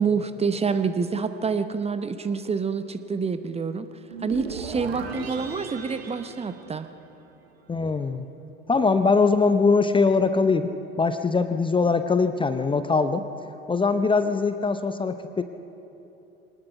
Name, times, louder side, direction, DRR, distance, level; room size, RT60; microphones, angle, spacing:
voice 1, 0.0-3.9 4.2-6.9, right 5 dB, 20° right, 11 dB, 0.9 m, -27 dB
sound 1, 4.1-7.4, right 5 dB, 75° right, 1.5 m, -37 dB
voice 2, 7.7-8.3 8.7-13.2 13.7-15.4, left 4 dB, 15° left, 10 dB, 0.8 m, -22 dB
23.5 x 19.5 x 5.9 m, 3.0 s
figure-of-eight pair, 60°, 31 cm